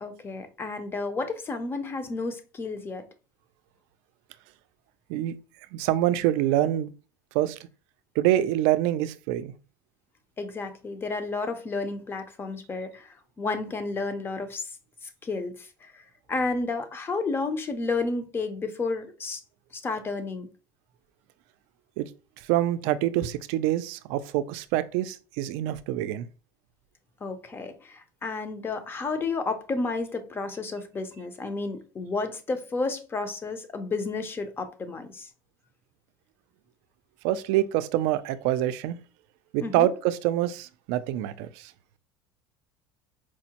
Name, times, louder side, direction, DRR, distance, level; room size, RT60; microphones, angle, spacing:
voice 1, 0.0-3.0 10.4-14.7 15.0-19.4 19.7-20.5 27.2-35.3 39.6-39.9, left 3 dB, 20° left, 0.5 m, -31 dB
voice 2, 5.7-6.9 7.3-7.6 8.2-9.5 22.0-22.1 22.5-26.3 37.2-39.0 39.5-41.5, right 13 dB, 75° right, 0.4 m, -25 dB
4.6 x 2.1 x 2.8 m
cardioid pair, 135°, 10 cm